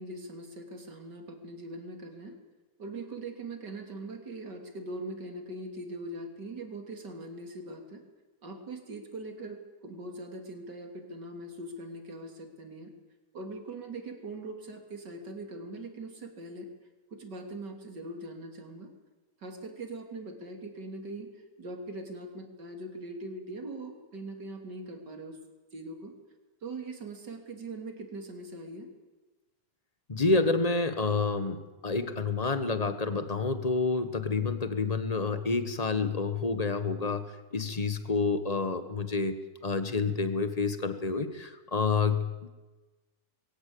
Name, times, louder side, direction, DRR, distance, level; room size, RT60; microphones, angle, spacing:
voice 1, 0.0-2.4 2.8-8.0 8.4-12.9 13.3-16.7 17.1-18.9 19.4-21.3 21.6-25.4 25.7-26.1 26.6-28.9, right 2 dB, 75° right, 5 dB, 3.4 m, -41 dB
voice 2, 30.1-37.2 37.5-39.4 39.6-42.5, left 4 dB, 25° left, 10 dB, 1.3 m, -28 dB
21.5 x 17.0 x 8.5 m, 1.2 s
omnidirectional pair, 1.9 m